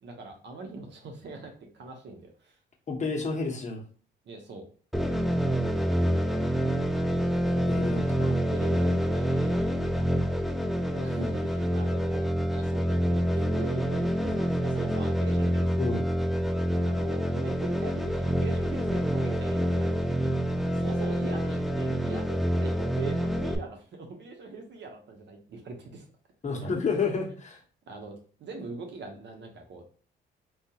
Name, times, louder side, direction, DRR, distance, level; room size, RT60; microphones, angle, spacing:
voice 1, 0.0-2.5 4.3-4.6 8.5-9.7 10.9-15.9 16.8-20.4 20.7-26.0 26.6-26.7 27.9-29.8, right 4 dB, 60° right, 3 dB, 0.9 m, -42 dB
voice 2, 2.9-3.8 7.6-8.3 15.8-16.1 26.4-27.6, left 4 dB, 35° left, 0 dB, 1.0 m, -30 dB
sound 1, 4.9-23.6, equal, ahead, 0.4 m, -27 dB
3.8 x 2.3 x 2.9 m, 0.42 s
cardioid pair, 90°, 20 cm